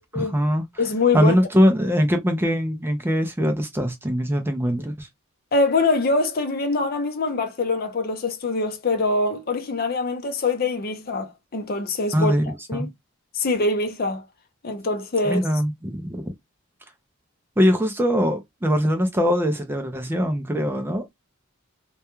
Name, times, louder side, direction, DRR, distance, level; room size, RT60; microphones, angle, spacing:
voice 1, 0.0-0.8 1.1-5.1 12.1-12.9 15.2-16.3 17.6-21.0, equal, 10° right, 0.4 m, -22 dB
voice 2, 0.8-1.3 5.5-12.3 12.7-12.9 13.3-14.2 14.6-15.4, left 3 dB, 45° left, 0.6 m, -24 dB
2.2 x 2.2 x 2.9 m
head